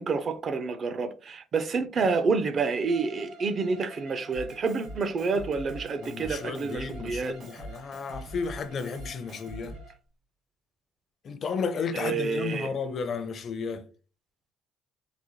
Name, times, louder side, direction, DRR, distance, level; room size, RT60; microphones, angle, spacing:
voice 1, 0.0-7.4 11.9-12.7, right 4 dB, 45° right, 0.5 m, -28 dB
Bowed string instrument, 2.8-10.0, right 1 dB, 85° right, 1.2 m, -50 dB
Drum kit, 4.3-9.9, right 1 dB, 60° right, 1.4 m, -44 dB
voice 2, 6.0-9.8 11.2-13.9, left 5 dB, 50° left, 0.5 m, -33 dB
3.8 x 2.1 x 3.0 m
cardioid pair, 100°, 0 cm